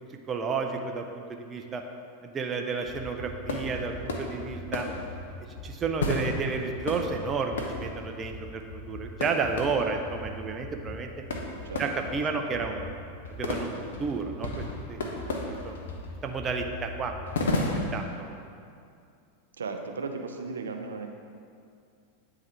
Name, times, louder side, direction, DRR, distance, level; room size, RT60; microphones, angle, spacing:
voice 1, 0.3-1.8 2.2-4.9 5.6-11.1 11.8-12.9 13.3-13.7 14.0-15.0 15.3-15.4 15.6-15.8 16.2-17.1 17.4-17.5 17.9-18.4, right 4 dB, 30° right, 4 dB, 0.5 m, -31 dB
sound 1, 2.8-18.2, left 2 dB, 70° left, 0.7 m, -35 dB
sound 2, 3.5-3.8 4.0-4.6 5.0-5.1 5.3-6.3 6.9-7.1 7.4-7.5 7.6-9.3 9.6-11.1, left 2 dB, 45° left, 1.0 m, -50 dB
voice 2, 11.6-12.0 12.3-12.6 19.6-21.2, right 4 dB, 80° right, 5 dB, 0.5 m, -36 dB
9.2 x 3.7 x 3.3 m, 2.4 s
figure-of-eight pair, 90°, 0 cm